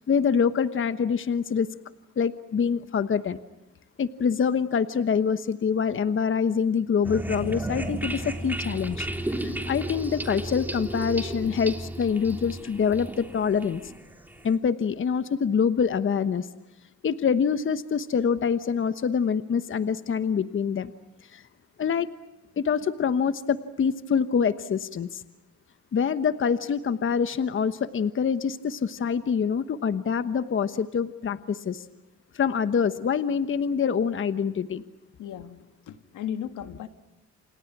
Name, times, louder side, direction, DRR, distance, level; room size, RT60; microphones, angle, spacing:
voice 1, 0.0-1.7 2.2-3.4 4.0-13.8 14.4-16.5 17.0-20.9 21.3-21.4 21.8-22.1 22.6-25.2 25.9-31.8 32.3-34.8, left 6 dB, 40° left, 12 dB, 1.2 m, -25 dB
sound 1, 7.0-14.5, right 1 dB, 5° right, 3.2 m, -33 dB
voice 2, 35.2-36.9, left 9 dB, 80° left, 9 dB, 2.0 m, -36 dB
29.0 x 28.0 x 6.1 m, 0.99 s
cardioid pair, 90°, 30 cm